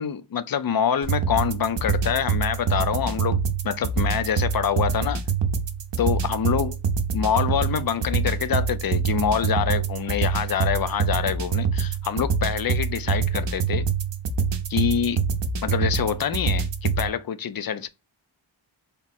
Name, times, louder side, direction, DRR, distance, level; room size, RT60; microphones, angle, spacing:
voice 1, 0.0-5.2 6.0-6.8 7.1-13.9 14.7-15.2 15.6-17.9, left 8 dB, 50° left, 0.5 m, -26 dB
sound 1, 1.0-17.1, right 5 dB, 60° right, 0.6 m, -25 dB
3.6 x 2.1 x 4.1 m
wide cardioid pair, 80°, 49 cm